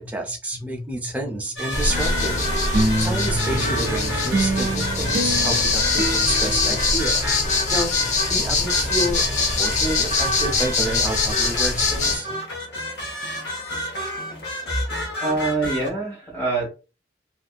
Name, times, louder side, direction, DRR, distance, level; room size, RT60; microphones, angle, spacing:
voice 1, 0.0-2.4 3.0-7.4 7.7-12.3, right 1 dB, 10° right, 1 dB, 0.4 m, -29 dB
sound 1, 1.6-15.9, left 1 dB, 75° left, 0.8 m, -30 dB
sound 2, 1.7-12.2, left 3 dB, 40° left, 0.6 m, -23 dB
sound 3, 1.9-7.5, right 2 dB, 65° right, 0.5 m, -27 dB
voice 2, 15.2-16.7, right 3 dB, 15° left, -3 dB, 1.2 m, -24 dB
2.6 x 2.4 x 2.2 m, 0.32 s
head